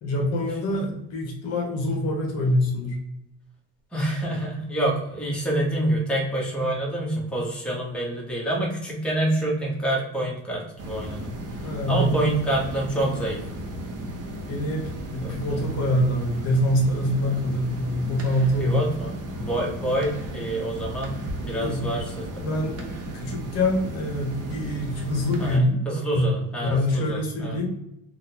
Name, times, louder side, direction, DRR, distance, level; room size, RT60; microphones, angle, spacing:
voice 1, 0.0-3.0 11.6-12.3 14.5-18.8 21.6-21.8 22.4-22.8 23.1-25.8 26.1-26.2 26.6-27.7, left 1 dB, 50° left, 1 dB, 0.8 m, -25 dB
voice 2, 3.9-11.3 11.9-13.5 15.2-15.6 18.6-22.6 25.4-27.6, right 1 dB, 5° left, -4 dB, 1.1 m, -27 dB
sound 1, 10.8-25.6, right 1 dB, 50° right, 0.8 m, -35 dB
3.7 x 2.3 x 2.8 m, 0.83 s
cardioid pair, 120°, 32 cm